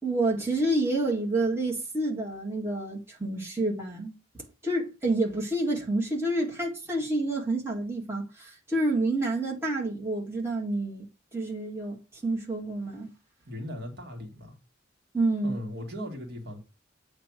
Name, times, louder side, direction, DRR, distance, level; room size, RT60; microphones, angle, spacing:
voice 1, 0.0-11.1 11.3-13.1 15.1-15.6, right 2 dB, 15° right, 2.0 m, -29 dB
voice 2, 13.5-14.6 15.4-16.6, left 1 dB, 55° right, 1.9 m, -38 dB
8.3 x 3.2 x 6.2 m
head